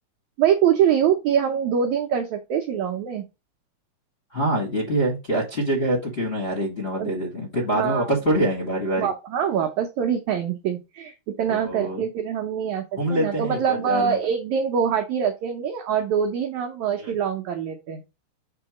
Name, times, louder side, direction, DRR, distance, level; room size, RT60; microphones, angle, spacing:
voice 1, 0.4-3.2 7.0-7.1 7.7-8.1 9.0-12.8 13.1-18.0, right 8 dB, 85° right, 3 dB, 1.6 m, -24 dB
voice 2, 4.3-9.1 11.5-12.0 13.0-14.2 17.0-17.1, right 1 dB, 30° left, -4 dB, 1.1 m, -25 dB
6.8 x 2.8 x 4.9 m, 0.26 s
omnidirectional pair, 4.2 m